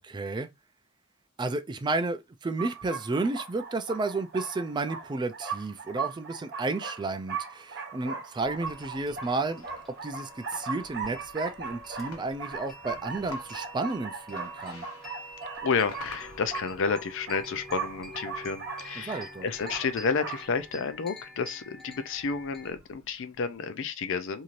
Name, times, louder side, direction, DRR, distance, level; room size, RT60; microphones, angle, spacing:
voice 1, 0.0-0.5 1.4-9.7 10.0-14.8 19.0-19.5, right 3 dB, 20° right, 0.3 m, -32 dB
sound 1, 2.6-20.5, right 5 dB, 55° right, 0.7 m, -39 dB
sound 2, 8.4-23.6, left 3 dB, 85° left, 0.8 m, -53 dB
sound 3, 8.5-22.7, equal, ahead, 1.1 m, -48 dB
voice 2, 15.6-24.4, left 5 dB, 65° left, 0.5 m, -31 dB
3.0 x 2.7 x 2.5 m
head